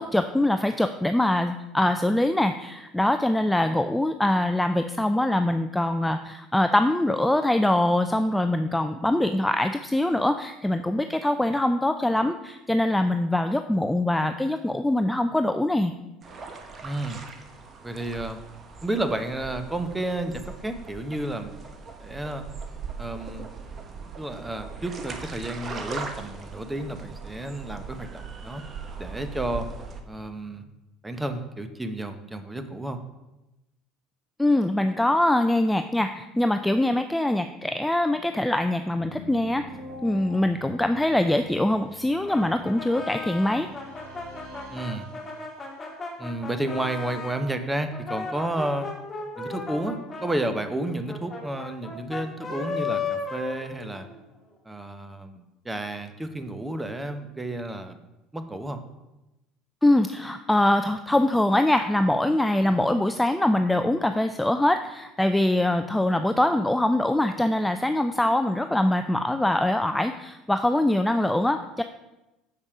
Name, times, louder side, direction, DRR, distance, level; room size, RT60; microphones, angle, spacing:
voice 1, 0.0-15.9 34.4-39.6 40.0-43.7 59.8-71.8, left 1 dB, 5° left, 8 dB, 0.4 m, -23 dB
sound 1, 16.2-30.0, right 5 dB, 40° right, 1.0 m, -40 dB
voice 2, 16.8-17.2 17.8-18.4 18.8-21.6 22.0-22.4 23.0-23.5 24.2-28.6 29.0-29.7 30.1-30.7 31.0-33.0 44.7-45.1 46.2-48.9 49.4-54.1 54.6-58.0 58.3-58.8, right 1 dB, 10° right, 8 dB, 0.9 m, -31 dB
sound 2, 39.0-45.8, left 1 dB, 70° right, 1.5 m, -45 dB
Brass instrument, 42.2-47.4 47.9-54.2, left 4 dB, 25° left, 2.5 m, -35 dB
6.7 x 5.3 x 4.9 m, 0.97 s
hypercardioid pair, 70°, 0 cm